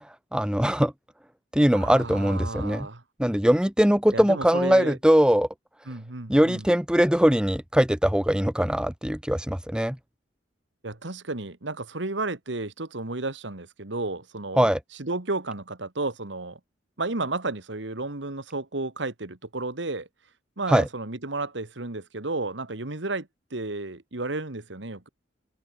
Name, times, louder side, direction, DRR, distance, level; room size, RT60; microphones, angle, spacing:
voice 1, 0.3-0.9 1.5-2.9 3.2-5.5 6.3-10.0 14.6-14.8 20.7-20.8, equal, 5° right, 1.0 m, -21 dB
voice 2, 1.7-3.0 4.1-5.0 5.9-6.7 10.8-16.6 17.0-20.1 20.6-25.1, right 2 dB, 70° right, 1.9 m, -32 dB
head